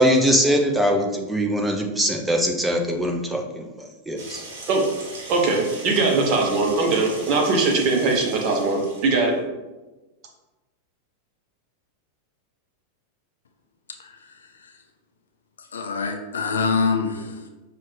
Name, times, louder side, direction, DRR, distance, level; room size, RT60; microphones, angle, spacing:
voice 1, 0.0-3.7 4.1-4.4, equal, 5° right, 1 dB, 0.6 m, -21 dB
sound 1, 4.2-9.3, right 2 dB, 55° right, 1.1 m, -39 dB
voice 2, 5.3-9.3, right 3 dB, 40° right, 1 dB, 0.9 m, -21 dB
voice 3, 15.7-17.5, left 4 dB, 70° left, 4 dB, 0.5 m, -25 dB
5.5 x 2.5 x 3.2 m, 1.1 s
figure-of-eight pair, 90°, 0 cm